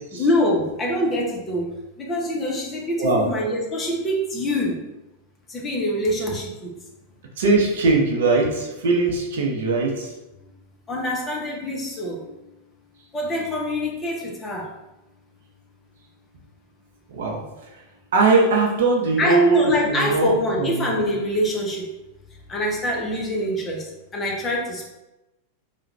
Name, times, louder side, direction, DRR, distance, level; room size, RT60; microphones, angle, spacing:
voice 1, 0.1-4.8 5.5-6.7 10.9-12.5 13.1-14.7 19.2-21.9 22.5-24.9, left 1 dB, 20° left, -2 dB, 0.7 m, -25 dB
voice 2, 7.4-10.1 17.1-17.4 18.1-20.3 20.6-20.9, right 3 dB, 60° right, 0 dB, 0.7 m, -20 dB
3.3 x 2.3 x 3.1 m, 0.97 s
figure-of-eight pair, 90°, 0 cm